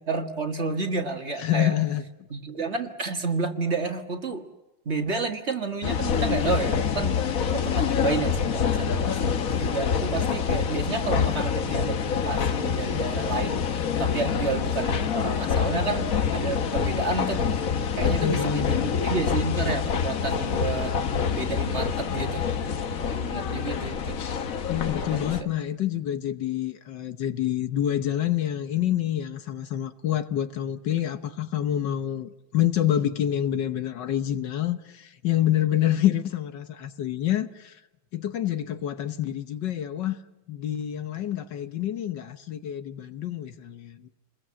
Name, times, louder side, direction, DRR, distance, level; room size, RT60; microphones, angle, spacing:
voice 1, 0.1-1.7 2.3-4.4 4.8-7.2 7.5-12.0 12.2-13.6 14.0-16.1 16.3-17.6 17.9-22.4 23.0-24.2 25.1-25.5, right 3 dB, 35° right, 6 dB, 1.8 m, -30 dB
voice 2, 1.4-2.0 18.0-18.8 24.7-37.7 38.1-40.2 40.5-44.1, left 11 dB, 65° left, 11 dB, 1.6 m, -27 dB
sound 1, 5.8-25.4, left 7 dB, 50° left, 1.3 m, -26 dB
29.0 x 21.5 x 7.5 m, 1.0 s
omnidirectional pair, 2.1 m